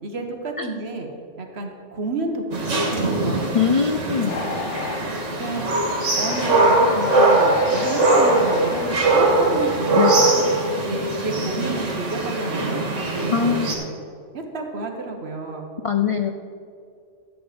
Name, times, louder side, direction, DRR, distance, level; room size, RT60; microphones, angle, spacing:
voice 1, 0.0-1.1 1.4-3.5 5.4-5.7 6.2-10.0 10.3-10.4 10.8-13.5 14.3-15.6, right 2 dB, 60° right, 3 dB, 1.5 m, -31 dB
sound 1, 2.5-13.7, right 2 dB, 85° right, 2.1 m, -21 dB
voice 2, 3.5-4.4 10.0-10.2 13.3-13.7 15.8-16.3, left 7 dB, 55° left, 6 dB, 0.3 m, -21 dB
sound 2, 4.3-9.8, left 4 dB, 70° left, 1.1 m, -32 dB
13.0 x 8.0 x 5.1 m, 2.3 s
omnidirectional pair, 1.2 m